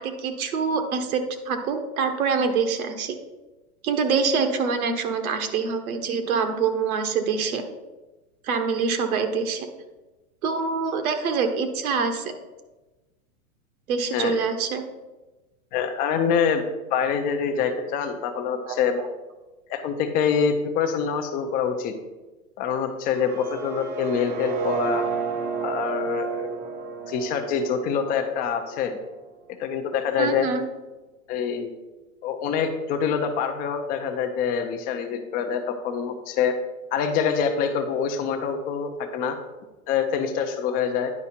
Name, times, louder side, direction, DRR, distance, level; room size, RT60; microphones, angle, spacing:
voice 1, 0.0-3.2 3.8-7.6 8.4-9.7 10.4-12.3 13.9-14.8 18.6-18.7 30.2-30.7, right 5 dB, 70° right, 7 dB, 1.2 m, -25 dB
voice 2, 15.7-16.6 16.9-19.0 19.7-21.9 22.6-25.0 25.6-26.6 27.1-29.0 29.6-30.5 31.3-31.7 32.2-36.6 36.9-39.4 39.9-41.1, left 7 dB, 20° left, 6 dB, 0.5 m, -25 dB
sound 1, 23.0-29.0, right 6 dB, 50° right, 1.1 m, -31 dB
9.6 x 4.8 x 4.3 m, 1.1 s
hypercardioid pair, 140°, 44 cm